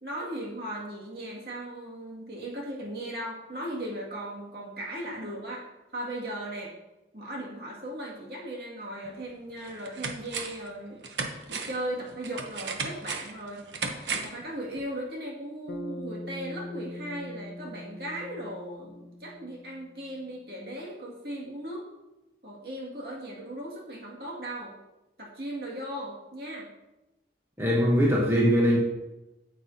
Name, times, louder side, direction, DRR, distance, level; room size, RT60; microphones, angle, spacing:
voice 1, 0.0-6.8 7.1-11.0 11.5-13.7 14.1-21.8 22.4-24.8 25.2-26.7, right 1 dB, 60° right, -3 dB, 2.2 m, -37 dB
sound 1, 9.0-9.1 9.6-10.7 11.0-14.4 14.8-14.9, right 4 dB, 85° right, 0.9 m, -35 dB
Bass guitar, 15.7-20.1, left 1 dB, 65° left, 0.7 m, -42 dB
voice 2, 27.6-28.8, equal, 15° right, -3 dB, 1.1 m, -21 dB
9.1 x 8.2 x 2.8 m, 0.99 s
head